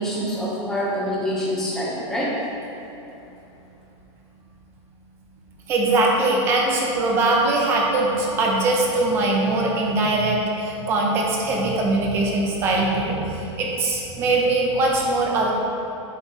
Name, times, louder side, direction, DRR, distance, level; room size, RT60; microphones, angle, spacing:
voice 1, 0.0-2.4, equal, 5° left, -7 dB, 0.9 m, -26 dB
voice 2, 5.7-15.5, right 2 dB, 15° right, -1 dB, 0.6 m, -21 dB
8.0 x 3.1 x 5.5 m, 2.9 s
supercardioid pair, 180°, 15 cm